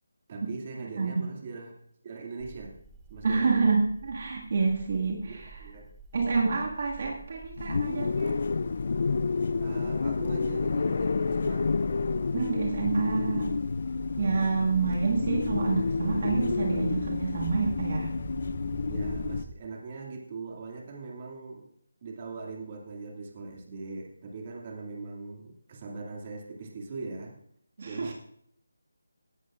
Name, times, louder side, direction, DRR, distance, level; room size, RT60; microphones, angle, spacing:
voice 1, 0.3-1.8 2.0-2.8 3.1-3.7 5.2-5.9 9.6-11.7 14.4-14.7 18.9-21.7 22.0-27.4 27.8-28.1, right 3 dB, 30° right, 0 dB, 2.2 m, -41 dB
sound 1, 2.4-19.6, right 4 dB, 10° right, 0.7 m, -45 dB
voice 2, 3.2-5.3 6.1-8.3 12.3-13.5 14.2-18.2 27.8-28.1, right 4 dB, 45° right, -1 dB, 1.9 m, -27 dB
sound 2, 7.6-19.4, left 4 dB, 50° left, 0.3 m, -30 dB
17.5 x 12.0 x 2.5 m, 0.68 s
figure-of-eight pair, 170°, 0 cm